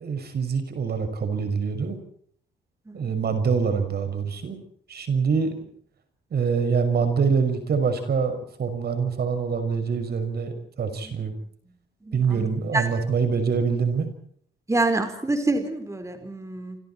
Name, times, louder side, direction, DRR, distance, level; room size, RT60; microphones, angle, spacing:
voice 1, 0.0-2.0 2.9-4.6 4.9-5.5 6.3-11.3 12.1-14.1, right 5 dB, 55° right, 8 dB, 6.1 m, -25 dB
voice 2, 12.1-12.5 12.7-12.8 14.7-16.8, right 2 dB, 15° right, 7 dB, 4.4 m, -26 dB
29.5 x 26.0 x 4.5 m, 0.62 s
cardioid pair, 90°, 20 cm